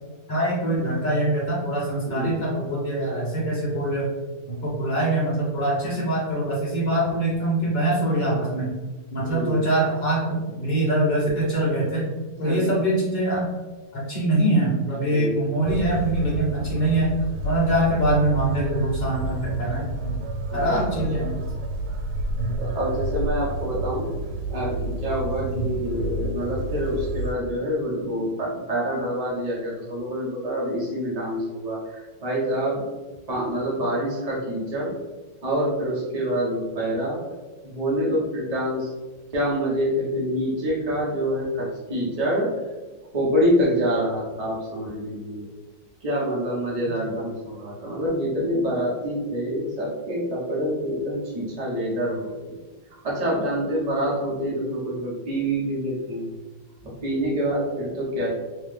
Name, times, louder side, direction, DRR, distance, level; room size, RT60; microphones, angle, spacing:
voice 1, 0.3-4.1 4.5-8.7 9.1-12.0 12.4-13.5 13.9-17.1 17.4-20.2 20.5-21.4 22.4-22.6 25.4-25.7, right 1 dB, 30° left, -6 dB, 0.9 m, -24 dB
voice 2, 2.1-2.4 9.2-9.7 12.4-12.9 15.1-15.8 20.5-21.1 22.6-24.1 24.5-32.9 33.3-34.9 35.4-37.2 37.6-38.9 39.3-42.6 43.1-45.5 46.0-52.6 53.0-56.3 56.8-58.3, equal, 30° right, -5 dB, 0.7 m, -26 dB
sound 1, 15.6-27.3, right 1 dB, 90° right, 1.5 m, -30 dB
3.2 x 3.2 x 3.3 m, 1.2 s
omnidirectional pair, 2.3 m